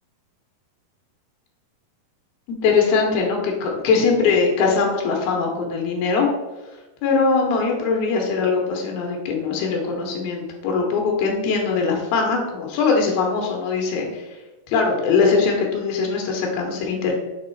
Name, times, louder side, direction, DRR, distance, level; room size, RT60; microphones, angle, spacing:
voice 1, 2.6-6.3 7.0-14.2 14.7-17.1, left 4 dB, 80° left, 1 dB, 2.9 m, -21 dB
7.2 x 3.5 x 4.5 m, 1.1 s
omnidirectional pair, 4.4 m